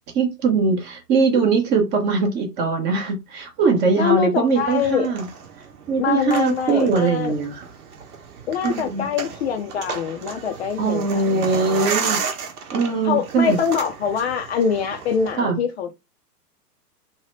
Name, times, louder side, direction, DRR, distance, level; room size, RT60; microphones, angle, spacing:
voice 1, 0.1-5.3 5.9-7.6 8.6-9.1 10.8-12.2 12.7-13.6 15.4-15.6, right 4 dB, 20° right, 0.6 m, -21 dB
voice 2, 4.0-5.1 6.0-7.3 8.5-11.4 13.0-15.9, left 7 dB, 45° left, 0.4 m, -24 dB
sound 1, 4.5-15.4, right 5 dB, 65° right, 0.9 m, -33 dB
2.7 x 2.1 x 3.0 m
figure-of-eight pair, 105°, 48 cm